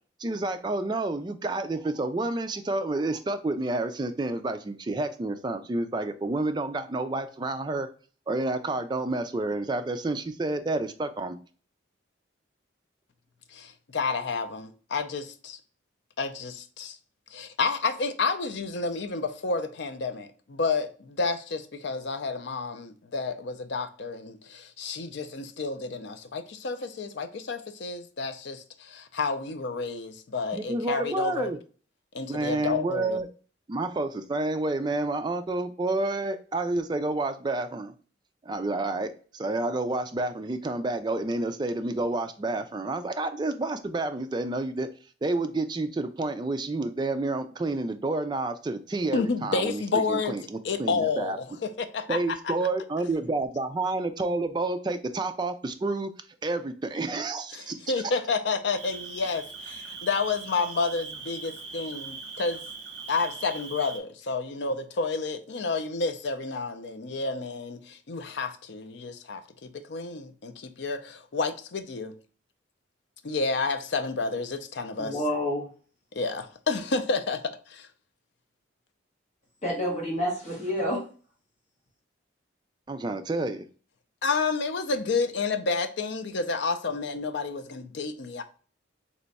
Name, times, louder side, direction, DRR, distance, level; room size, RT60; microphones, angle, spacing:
voice 1, 0.2-7.9 8.3-11.4 30.5-31.6 32.3-33.3 33.7-37.9 38.5-44.9 45.2-49.8 50.1-51.4 52.1-56.1 56.4-57.8 82.9-83.6, right 2 dB, 20° right, 0.3 m, -29 dB
voice 2, 13.5-15.6 16.2-17.0 17.3-31.5 32.1-33.2 49.1-50.4 50.6-52.5 57.5-62.6 63.1-72.1 73.2-75.2 76.1-77.4 77.7-77.9 84.2-88.4, left 4 dB, 60° left, 0.5 m, -30 dB
Cricket, 58.8-64.0, right 5 dB, 55° right, 0.9 m, -40 dB
voice 3, 75.0-75.7 79.6-81.0, equal, 35° left, 1.5 m, -28 dB
3.3 x 3.0 x 4.0 m
head